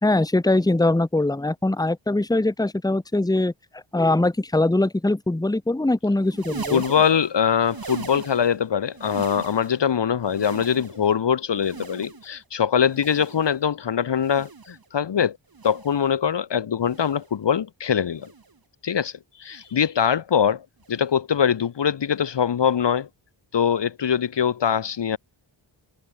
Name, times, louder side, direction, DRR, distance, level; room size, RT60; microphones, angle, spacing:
voice 1, 0.0-6.8, left 2 dB, 10° left, 1.1 m, -22 dB
sound 1, 6.2-8.6 8.9-9.9 10.2-11.2 11.6-12.4 12.9-13.6 14.2-14.8 15.5-16.1 16.8-17.4 18.2-18.6 19.5-19.8 20.8-21.0 22.2-22.3, right 4 dB, 45° right, 4.8 m, -39 dB
voice 2, 6.7-15.4 15.6-18.3 18.8-19.1 19.4-23.1 23.5-25.2, left 8 dB, 60° left, 1.0 m, -23 dB
wide cardioid pair, 135°, 48 cm